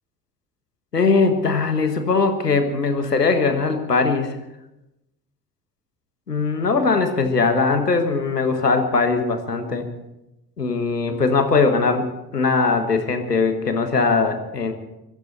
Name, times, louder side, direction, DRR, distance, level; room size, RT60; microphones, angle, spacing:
voice 1, 0.9-4.4 6.3-9.9 10.6-14.7, left 4 dB, 90° left, 7 dB, 1.5 m, -20 dB
24.0 x 13.0 x 4.3 m, 0.93 s
figure-of-eight pair, 55°, 46 cm